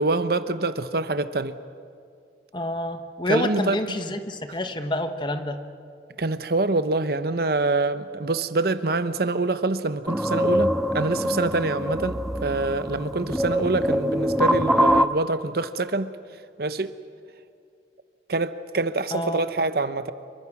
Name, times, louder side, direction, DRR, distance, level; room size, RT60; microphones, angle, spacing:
voice 1, 0.0-1.6 3.3-3.8 6.2-16.1 16.6-16.9 18.3-20.1, right 3 dB, 55° right, 12 dB, 0.9 m, -25 dB
voice 2, 2.5-5.6 19.1-19.4, left 1 dB, 25° left, 8 dB, 1.2 m, -28 dB
sound 1, 10.1-15.1, equal, ahead, 0.6 m, -24 dB
27.5 x 23.5 x 6.1 m, 2.5 s
head